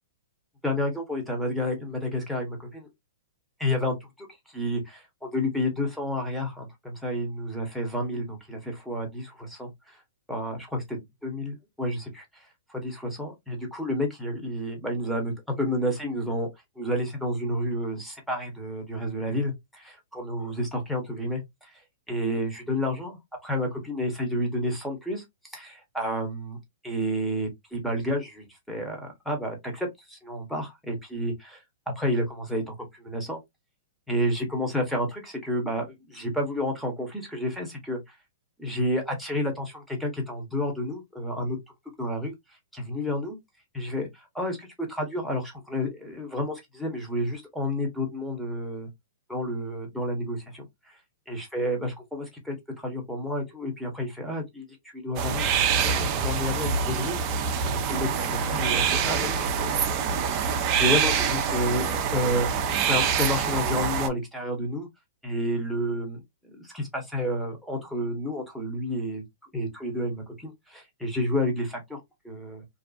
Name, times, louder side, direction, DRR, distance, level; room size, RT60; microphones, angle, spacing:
voice 1, 0.6-2.9 3.6-10.0 10.3-16.5 16.8-21.8 22.1-31.6 32.0-33.4 34.1-38.1 38.6-41.6 42.0-42.3 42.7-43.4 43.7-48.9 49.3-51.0 51.3-57.2 57.6-62.5 62.8-64.9 65.2-69.2 69.5-72.6, left 1 dB, ahead, 1.0 m, -30 dB
sound 1, 55.2-64.1, right 6 dB, 35° right, 0.5 m, -25 dB
2.6 x 2.3 x 2.4 m
hypercardioid pair, 135°, 0 cm